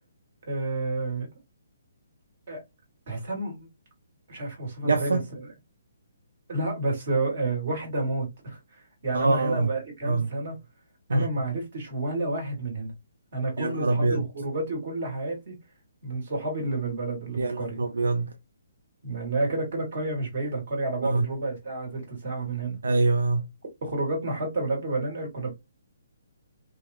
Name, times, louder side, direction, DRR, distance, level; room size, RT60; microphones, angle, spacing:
voice 1, 0.5-1.3 2.5-2.6 3.1-3.7 4.3-5.5 6.5-10.6 11.1-12.9 13.3-15.5 16.0-17.8 19.0-22.8 23.8-25.5, right 2 dB, 50° right, 1.7 m, -30 dB
voice 2, 4.8-5.2 9.1-9.7 10.1-10.3 11.1-11.3 13.6-14.3 17.4-18.3 21.0-21.3 22.8-23.5, right 3 dB, 75° right, 0.3 m, -24 dB
2.8 x 2.4 x 2.5 m
figure-of-eight pair, 135°, 0 cm